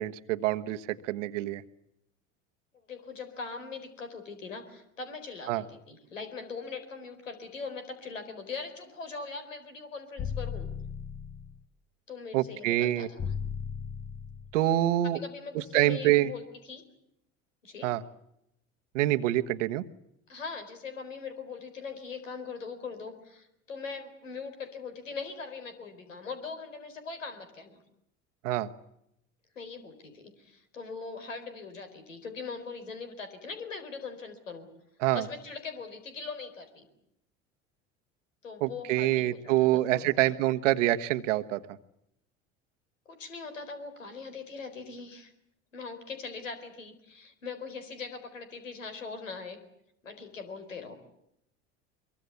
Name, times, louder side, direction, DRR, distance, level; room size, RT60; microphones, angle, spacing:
voice 1, 0.0-1.6 5.5-5.6 12.3-13.1 14.5-15.2 15.5-16.3 17.8-18.0 18.9-19.8 28.4-28.7 35.0-35.2 38.6-41.6, right 14 dB, 75° right, 10 dB, 1.4 m, -26 dB
voice 2, 2.9-10.7 12.1-13.3 15.0-16.8 17.6-17.9 20.3-27.8 29.5-34.7 35.1-36.9 38.4-40.1 43.1-45.3 45.7-49.6 50.0-51.0, left 4 dB, 90° left, 8 dB, 4.3 m, -41 dB
sound 1, 10.2-11.6 13.2-14.6, left 6 dB, 25° left, 1.1 m, -36 dB
23.5 x 23.5 x 8.4 m, 0.79 s
hypercardioid pair, 70°, 37 cm